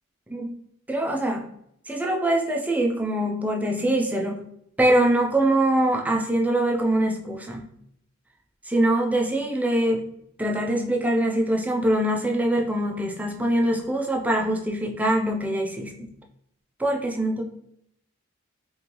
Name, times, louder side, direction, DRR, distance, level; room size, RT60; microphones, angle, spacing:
voice 1, 0.9-1.5 1.9-4.5 4.8-7.6 8.7-10.0 10.4-16.1 16.8-17.4, right 1 dB, 5° right, 0 dB, 0.4 m, -23 dB
3.0 x 2.5 x 2.8 m, 0.75 s
head